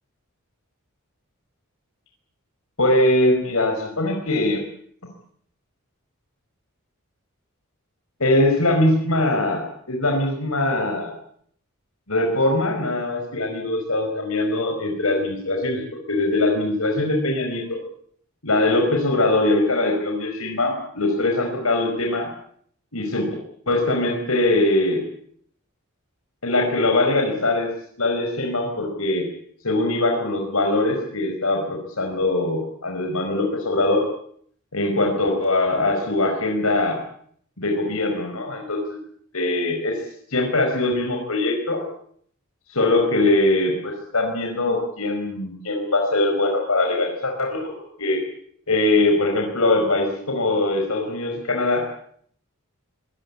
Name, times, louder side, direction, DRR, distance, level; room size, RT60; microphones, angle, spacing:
voice 1, 2.8-4.6 8.2-11.1 12.1-17.8 18.4-22.3 22.9-23.3 23.7-25.0 26.4-27.7 28.0-29.3 29.6-34.0 34.7-37.0 37.6-38.8 39.3-40.0 40.3-41.8 42.7-47.7 48.0-48.2 48.7-51.8, left 2 dB, 80° left, 2 dB, 5.0 m, -22 dB
23.0 x 20.5 x 8.6 m, 0.64 s
head